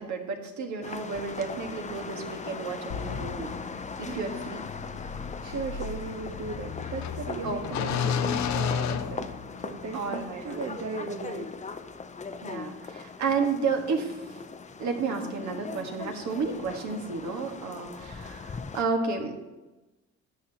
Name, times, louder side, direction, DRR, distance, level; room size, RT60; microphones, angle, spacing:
voice 1, 0.0-3.5 4.0-4.7 7.4-8.0 9.9-10.6 12.4-14.1 14.8-19.4, right 4 dB, 70° right, 3 dB, 1.5 m, -32 dB
sound 1, 0.8-18.8, left 5 dB, 25° left, 0.6 m, -40 dB
sound 2, 2.9-9.8, left 7 dB, 65° left, 0.6 m, -33 dB
voice 2, 5.0-9.3 9.6-11.5, right 4 dB, 55° right, 3 dB, 0.8 m, -37 dB
12.5 x 8.0 x 2.9 m, 1.1 s
cardioid pair, 90°, 30 cm